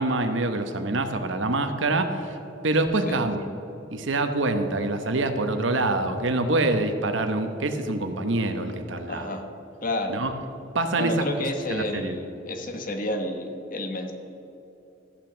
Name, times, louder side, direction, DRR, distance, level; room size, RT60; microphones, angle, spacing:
voice 1, 0.0-2.4 2.6-3.4 3.9-9.3 10.1-10.3 10.7-11.3 11.7-12.2, right 2 dB, 85° right, 7 dB, 1.0 m, -25 dB
voice 2, 9.1-9.4 9.8-10.2 11.0-14.1, left 1 dB, 45° left, 5 dB, 1.2 m, -30 dB
14.0 x 6.0 x 7.2 m, 2.9 s
head